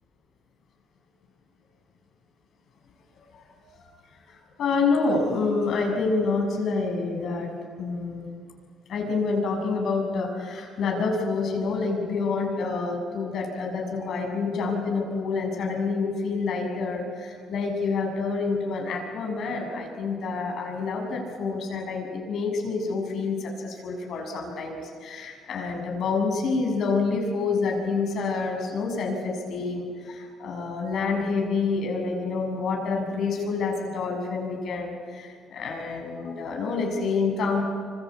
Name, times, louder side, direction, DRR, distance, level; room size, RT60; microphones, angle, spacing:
voice 1, 3.3-3.9 4.3-7.5 7.8-8.4 8.9-37.6, left 4 dB, 60° left, 2 dB, 6.7 m, -28 dB
26.0 x 25.5 x 8.5 m, 2.1 s
cardioid pair, 115°, 0 cm